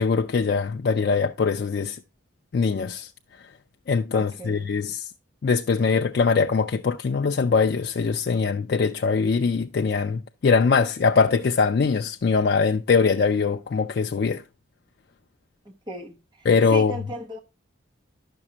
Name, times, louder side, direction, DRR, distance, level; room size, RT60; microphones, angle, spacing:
voice 1, 0.0-2.0 2.5-3.1 3.9-5.1 5.4-14.4 16.5-16.9, left 5 dB, 55° left, 0.3 m, -22 dB
voice 2, 4.1-4.6 15.6-17.4, right 1 dB, 20° right, 1.0 m, -37 dB
10.5 x 6.1 x 2.8 m
head